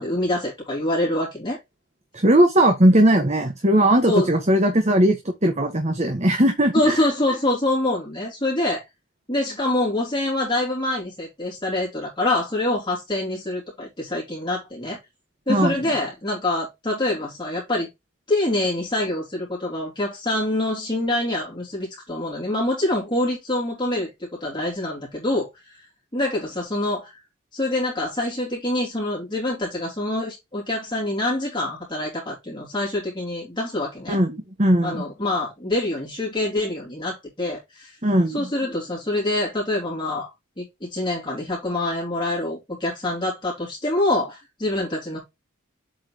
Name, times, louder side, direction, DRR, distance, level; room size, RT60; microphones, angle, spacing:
voice 1, 0.0-1.6 4.1-4.3 6.7-8.8 9.3-15.0 15.5-17.9 18.3-25.8 26.1-27.2 27.5-34.2 34.8-38.0 38.3-40.3 40.6-45.2, left 1 dB, 20° left, 3.4 m, -25 dB
voice 2, 2.1-7.0 15.5-15.8 34.1-35.0 38.0-38.5, right 1 dB, 35° right, 1.4 m, -19 dB
7.9 x 4.8 x 3.0 m
head